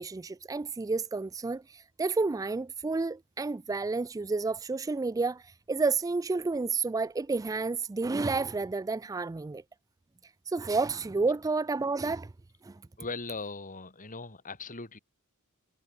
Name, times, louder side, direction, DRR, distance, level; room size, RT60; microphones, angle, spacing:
voice 1, 0.0-9.6 10.5-12.3 12.6-12.8, right 3 dB, 15° right, 0.3 m, -30 dB
voice 2, 13.0-15.0, left 3 dB, 35° left, 3.8 m, -39 dB
head